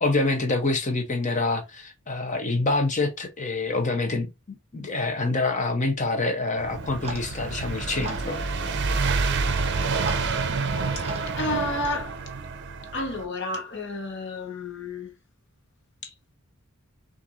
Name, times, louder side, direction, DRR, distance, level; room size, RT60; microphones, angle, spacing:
voice 1, 0.0-8.5, left 3 dB, 35° left, 0.8 m, -26 dB
sound 1, 6.6-13.2, right 4 dB, 50° right, 0.6 m, -28 dB
Clock, 6.7-12.0, right 2 dB, 30° right, 1.1 m, -36 dB
voice 2, 11.3-12.1 12.9-15.1 16.0-16.1, left 2 dB, 55° left, 1.2 m, -31 dB
5.8 x 2.6 x 2.6 m
head